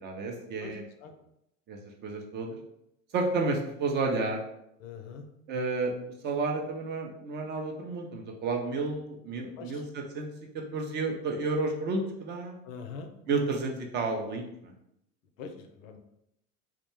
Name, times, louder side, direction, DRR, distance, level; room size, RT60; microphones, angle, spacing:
voice 1, 0.0-0.8 1.7-2.5 3.1-4.4 5.5-5.9 6.2-10.3 10.7-12.6 13.3-14.7, right 3 dB, 25° right, 2 dB, 0.4 m, -31 dB
voice 2, 0.6-1.1 4.8-5.3 9.6-9.8 12.6-13.1 15.4-16.0, left 5 dB, 65° left, 5 dB, 0.5 m, -43 dB
2.2 x 2.0 x 3.0 m, 0.79 s
hypercardioid pair, 80°, 42 cm